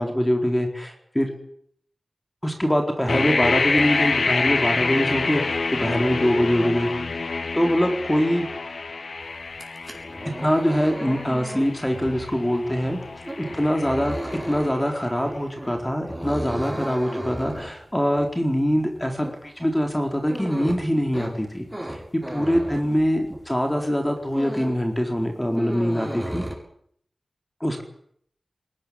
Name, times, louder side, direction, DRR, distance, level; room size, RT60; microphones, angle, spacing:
voice 1, 0.0-1.3 2.4-6.9 7.5-8.6 10.4-13.2 13.6-22.0 22.3-26.4 27.6-27.8, equal, 10° left, 3 dB, 4.2 m, -23 dB
sound 1, 3.1-14.9, left 3 dB, 80° left, 1.7 m, -27 dB
sound 2, 9.5-23.5 23.9-24.9 25.1-26.5, right 1 dB, 10° right, 7.5 m, -35 dB
21.0 x 19.5 x 9.9 m, 0.68 s
wide cardioid pair, 60°, 0 cm